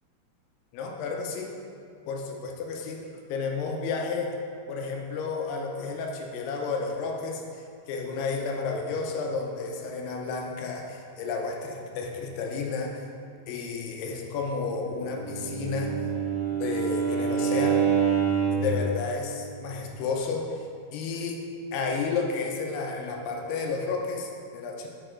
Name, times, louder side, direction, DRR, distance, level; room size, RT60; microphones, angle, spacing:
voice 1, 0.7-1.5 2.1-4.4 4.7-13.1 13.5-15.9 16.6-17.9 18.5-20.6 20.9-24.9, left 4 dB, 90° left, 1 dB, 2.8 m, -32 dB
Bowed string instrument, 15.2-18.8, right 7 dB, 85° right, 2.8 m, -26 dB
7.6 x 4.5 x 4.4 m, 2.4 s
omnidirectional pair, 4.5 m